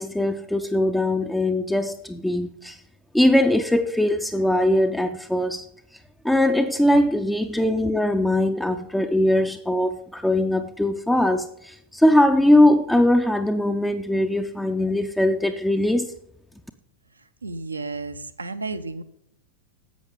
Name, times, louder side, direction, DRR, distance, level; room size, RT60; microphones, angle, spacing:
voice 1, 0.0-2.8 3.1-5.6 6.2-16.1, left 1 dB, 5° left, 0.5 m, -21 dB
voice 2, 17.4-19.0, right 3 dB, 80° right, 0.6 m, -32 dB
11.0 x 7.9 x 3.8 m
figure-of-eight pair, 90°, 0 cm